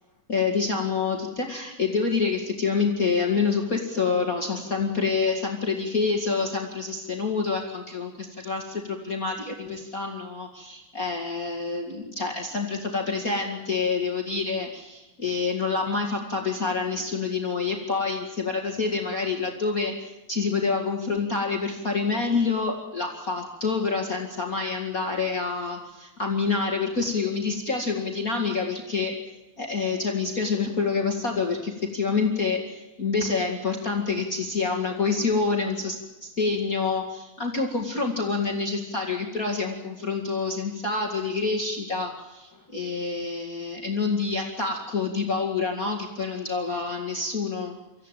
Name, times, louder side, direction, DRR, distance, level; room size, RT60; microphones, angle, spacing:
voice 1, 0.3-29.1 29.6-47.8, left 4 dB, 30° left, 2 dB, 2.5 m, -27 dB
26.0 x 15.5 x 9.2 m, 1.0 s
omnidirectional pair, 3.3 m